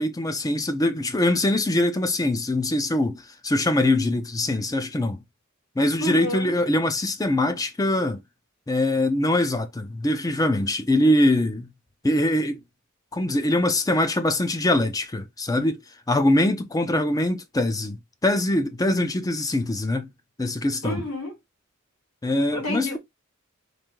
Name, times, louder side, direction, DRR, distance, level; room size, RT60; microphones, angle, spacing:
voice 1, 0.0-5.2 5.8-8.2 8.7-11.7 12.0-12.6 13.1-15.8 16.1-20.1 20.4-21.0 22.2-23.0, left 1 dB, 15° left, 0.5 m, -23 dB
voice 2, 6.0-6.5 20.8-21.3 22.5-23.0, left 1 dB, 85° left, 2.0 m, -30 dB
3.3 x 2.6 x 3.7 m
head